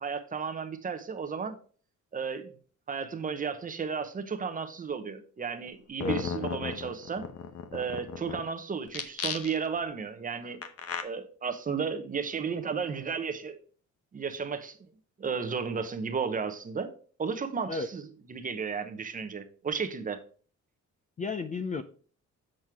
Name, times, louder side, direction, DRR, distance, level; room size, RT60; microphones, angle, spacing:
voice 1, 0.0-1.6 2.1-2.5 2.9-7.3 7.7-10.6 11.0-13.6 14.1-14.8 15.2-16.9 17.2-18.0 18.3-20.2, right 6 dB, 25° right, 0.8 m, -33 dB
sound 1, 5.7-5.8 6.0-8.4 8.9-9.8 10.6-11.0, left 7 dB, 50° left, 0.9 m, -35 dB
voice 2, 21.2-21.8, left 4 dB, 25° left, 0.4 m, -32 dB
7.5 x 6.2 x 3.5 m
cardioid pair, 175°, 30 cm